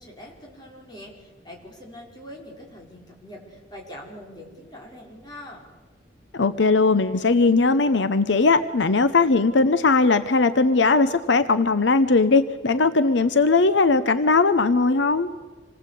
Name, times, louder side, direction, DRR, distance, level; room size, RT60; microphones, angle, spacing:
voice 1, 0.0-5.7, left 1 dB, 20° left, -1 dB, 5.2 m, -43 dB
voice 2, 6.3-15.3, left 3 dB, 70° left, 12 dB, 0.8 m, -19 dB
27.0 x 19.5 x 8.4 m, 1.5 s
head